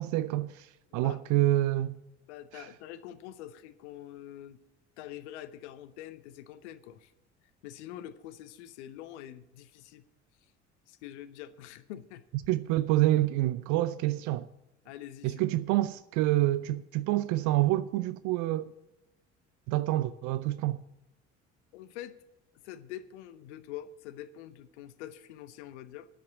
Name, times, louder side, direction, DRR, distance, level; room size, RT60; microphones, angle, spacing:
voice 1, 0.0-2.0 2.5-2.7 12.5-14.5 15.2-18.7 19.7-20.8, right 15 dB, 55° right, 0.5 m, -27 dB
voice 2, 2.3-4.6 5.0-7.1 7.6-10.0 10.9-12.2 14.9-15.4 21.7-22.2 22.6-26.1, left 12 dB, 70° left, 0.8 m, -45 dB
10.5 x 7.7 x 8.0 m
figure-of-eight pair, 55°, 35 cm